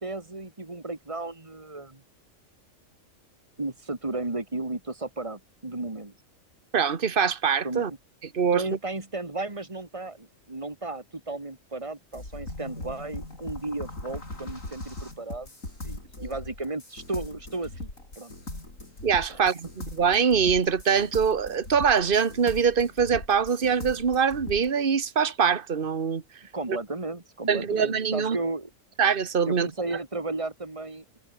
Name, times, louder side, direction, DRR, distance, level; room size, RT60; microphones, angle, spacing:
voice 1, 0.0-2.0 3.6-6.1 7.6-7.8 8.5-15.5 15.8-17.9 18.2-18.3 19.3-19.4 26.5-28.7 29.4-31.2, right 2 dB, 25° right, 2.9 m, -34 dB
voice 2, 6.7-7.9 8.3-8.6 19.0-26.2 27.5-28.4 29.0-29.7, right 6 dB, 45° right, 1.6 m, -23 dB
sound 1, 12.1-24.7, left 2 dB, 80° left, 6.6 m, -40 dB
omnidirectional pair, 1.4 m